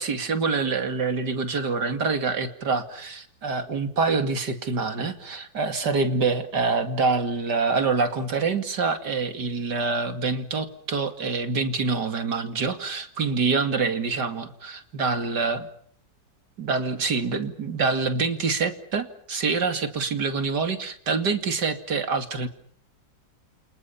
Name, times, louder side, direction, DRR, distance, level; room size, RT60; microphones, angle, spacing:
voice 1, 0.0-15.7 16.6-22.5, right 4 dB, 60° right, 8 dB, 2.9 m, -26 dB
29.5 x 26.0 x 5.8 m, 0.63 s
omnidirectional pair, 2.0 m